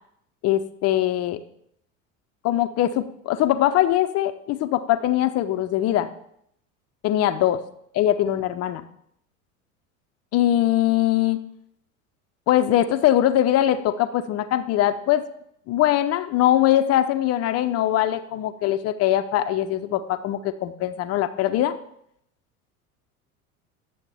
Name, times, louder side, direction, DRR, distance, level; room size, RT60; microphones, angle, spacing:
voice 1, 0.4-1.4 2.4-6.1 7.0-7.6 7.9-8.8 10.3-11.4 12.5-15.2 15.7-21.7, left 12 dB, 35° left, 10 dB, 0.5 m, -21 dB
9.8 x 7.1 x 3.4 m, 0.72 s
hypercardioid pair, 80°, 43 cm